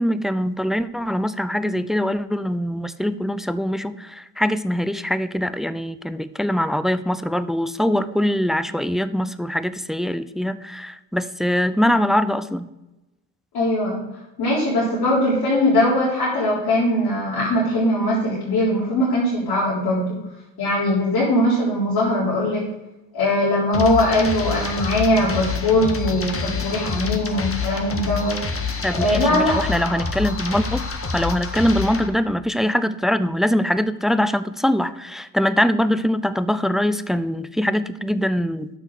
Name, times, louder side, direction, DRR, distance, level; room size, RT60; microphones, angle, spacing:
voice 1, 0.0-12.7 28.8-30.8 31.1-38.8, equal, ahead, 14 dB, 0.6 m, -23 dB
voice 2, 13.5-14.0 14.4-20.2 20.6-22.6 23.1-28.4 28.9-29.6, left 1 dB, 80° left, -8 dB, 3.9 m, -20 dB
sound 1, 23.7-32.1, left 4 dB, 35° left, 1.7 m, -27 dB
9.7 x 6.3 x 6.5 m, 0.96 s
supercardioid pair, 55°, 38 cm